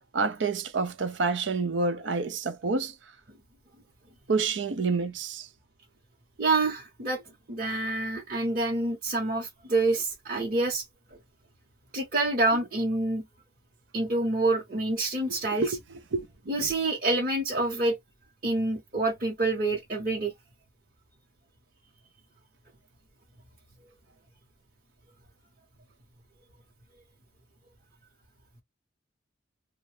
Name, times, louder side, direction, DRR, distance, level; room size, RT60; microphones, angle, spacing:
voice 1, 0.0-2.9 4.3-5.5 15.3-15.8 16.1-16.3 16.6-16.7, right 4 dB, 85° right, 0.6 m, -28 dB
voice 2, 6.4-7.2 7.5-10.8 11.9-13.2 13.9-15.7 16.5-18.0 18.4-20.3, right 2 dB, 45° right, 1.2 m, -27 dB
2.7 x 2.5 x 3.2 m
head